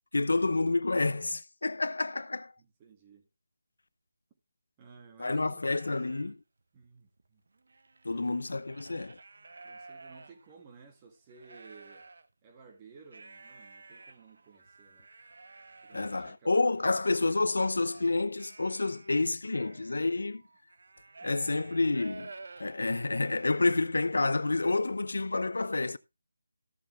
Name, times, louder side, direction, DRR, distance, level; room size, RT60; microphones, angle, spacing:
voice 1, 0.1-2.5 5.2-6.4 8.0-9.2 15.9-20.4 21.2-22.3 22.6-26.0, left 3 dB, 80° left, 0.7 m, -29 dB
voice 2, 2.6-3.3 4.8-5.9 6.7-7.4 8.1-8.5 9.6-12.1 12.4-15.1 15.8-17.5 21.2-21.3, right 5 dB, 20° right, 1.8 m, -56 dB
sound 1, 5.6-6.3 6.8-6.9 7.2-10.8 11.2-12.3 13.0-23.9, right 3 dB, 65° right, 1.1 m, -52 dB
14.5 x 6.8 x 3.2 m
figure-of-eight pair, 170°, 0 cm